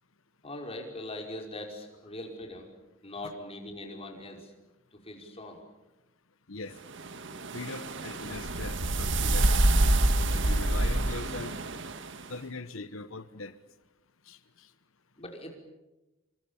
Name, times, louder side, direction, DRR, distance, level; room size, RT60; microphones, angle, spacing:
voice 1, 0.4-2.7 3.0-4.5 4.9-5.6 15.2-15.5, left 1 dB, 30° left, 5.4 m, -41 dB
sound 1, 6.9-12.2, right 1 dB, 60° right, 1.7 m, -27 dB
voice 2, 7.5-9.6 10.3-11.5 12.3-13.5 14.3-14.4, left 3 dB, 70° left, 1.1 m, -40 dB
27.5 x 26.0 x 7.3 m
head